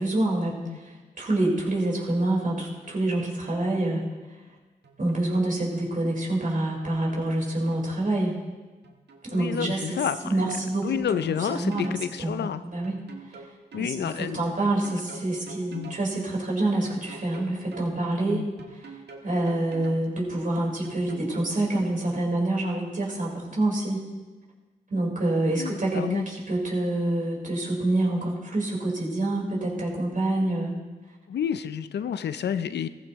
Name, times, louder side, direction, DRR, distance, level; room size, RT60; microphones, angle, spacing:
voice 1, 0.0-4.0 5.0-8.3 9.2-11.0 11.5-11.9 12.2-13.0 13.8-18.9 19.2-24.0 24.9-30.7, right 2 dB, 50° right, -3 dB, 4.4 m, -27 dB
sound 1, 2.6-3.2 3.5-4.0 4.8-5.9 6.6-8.0 8.8-9.5 9.7-9.9 10.6-12.0 12.8-13.9 14.6-16.0 16.8-17.9 18.6-20.0 20.8-21.7, right 4 dB, 80° right, 1.5 m, -46 dB
voice 2, 9.3-10.6 10.8-12.6 13.7-14.6 15.7-16.0 18.3-18.5 25.6-26.3 31.3-32.9, left 8 dB, 85° left, 12 dB, 0.5 m, -30 dB
16.0 x 14.5 x 3.1 m, 1.3 s
cardioid pair, 45°, 17 cm